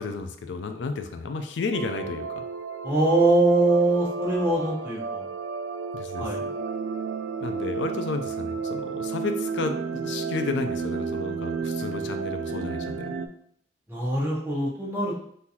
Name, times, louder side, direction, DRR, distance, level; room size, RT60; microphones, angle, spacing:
voice 1, 0.0-2.4 5.9-6.3 7.4-13.2, left 4 dB, 80° left, 7 dB, 0.4 m, -32 dB
sound 1, 1.7-13.3, right 5 dB, 85° right, 0.3 m, -32 dB
voice 2, 2.8-5.2 6.2-6.5 13.9-15.2, right 2 dB, 15° right, -5 dB, 0.8 m, -23 dB
3.7 x 2.6 x 2.8 m, 0.66 s
head